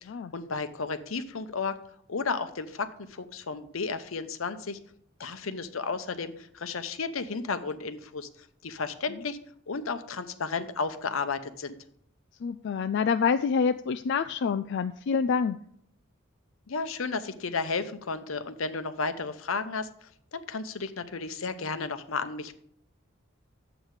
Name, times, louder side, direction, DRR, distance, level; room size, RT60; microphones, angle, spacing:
voice 1, 0.0-1.8 2.1-4.8 5.2-8.3 8.6-9.4 9.7-11.8 16.7-22.5, left 4 dB, 80° left, 11 dB, 0.8 m, -33 dB
voice 2, 12.4-15.6, left 6 dB, 60° left, 10 dB, 0.3 m, -27 dB
11.0 x 7.9 x 4.8 m, 0.67 s
head